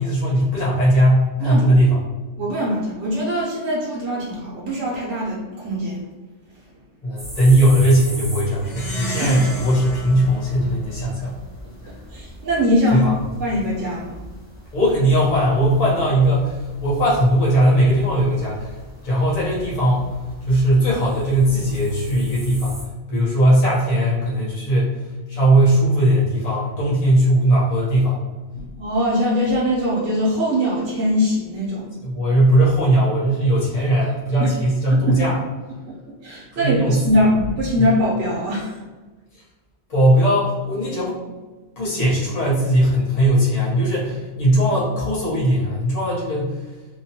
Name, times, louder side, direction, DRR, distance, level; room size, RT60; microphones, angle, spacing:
voice 1, 0.0-2.0 7.0-11.4 12.9-13.2 14.7-18.7 19.0-20.1 20.4-22.8 23.1-28.2 32.0-35.4 36.5-37.0 37.8-37.9 39.3-39.4 39.9-41.2 41.8-46.7, right 1 dB, 35° left, -8 dB, 0.7 m, -18 dB
voice 2, 2.4-6.0 9.2-9.3 12.1-13.1 13.4-14.2 28.8-31.9 34.4-34.5 34.9-35.2 35.9-36.0 36.2-38.8, equal, 70° right, -6 dB, 0.9 m, -22 dB
sound 1, 7.2-22.8, equal, 10° right, 0.7 m, -39 dB
Plucked string instrument, 8.6-11.4, right 1 dB, 70° left, 1.2 m, -32 dB
2.8 x 2.1 x 2.8 m, 1.2 s
omnidirectional pair, 1.3 m